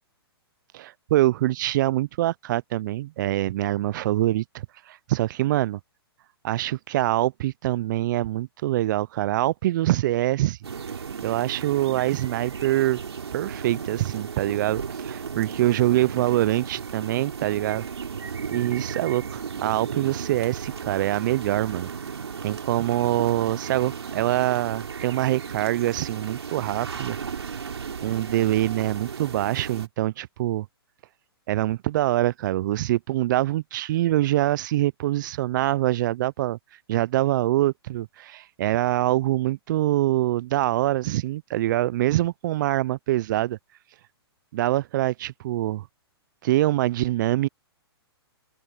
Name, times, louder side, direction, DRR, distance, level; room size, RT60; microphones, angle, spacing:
voice 1, 0.7-5.8 6.4-10.6 11.2-13.0 13.3-17.8 18.5-21.9 22.4-27.2 28.0-30.7 31.5-36.6 36.9-43.6 44.5-45.8 46.4-47.5, right 15 dB, 50° right, 0.5 m, -24 dB
sound 1, 10.6-29.9, right 6 dB, 80° right, 3.2 m, -35 dB
open air
hypercardioid pair, 125°, 14 cm